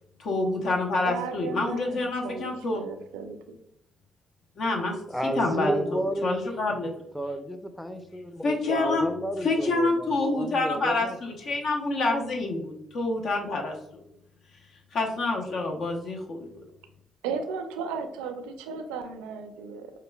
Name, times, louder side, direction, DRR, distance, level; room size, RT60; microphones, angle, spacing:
voice 1, 0.2-2.9 4.6-5.0 5.4-7.0 8.4-9.1 9.4-14.0 14.9-16.5, left 2 dB, 65° left, 1 dB, 0.8 m, -27 dB
voice 2, 1.1-3.6 17.2-19.9, right 5 dB, 80° right, 8 dB, 0.4 m, -35 dB
voice 3, 5.1-6.4 7.1-11.2, equal, 5° left, 8 dB, 0.5 m, -31 dB
4.8 x 2.3 x 2.2 m, 0.75 s
hypercardioid pair, 50°, 0 cm